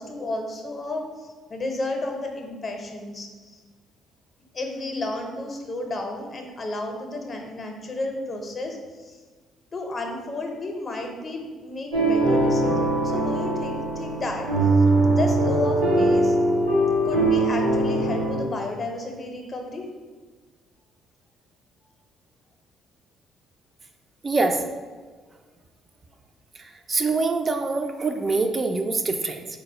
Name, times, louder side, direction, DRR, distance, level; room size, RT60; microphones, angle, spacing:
voice 1, 0.0-3.6 4.5-9.2 9.7-14.5 15.1-16.4 17.0-19.9, left 2 dB, 40° left, 3 dB, 0.6 m, -32 dB
sound 1, 11.9-18.4, right 2 dB, 85° right, 0.8 m, -21 dB
voice 2, 24.2-24.6 26.6-29.5, right 3 dB, 35° right, 5 dB, 0.3 m, -25 dB
3.9 x 2.0 x 3.8 m, 1.4 s
hypercardioid pair, 50°, 0 cm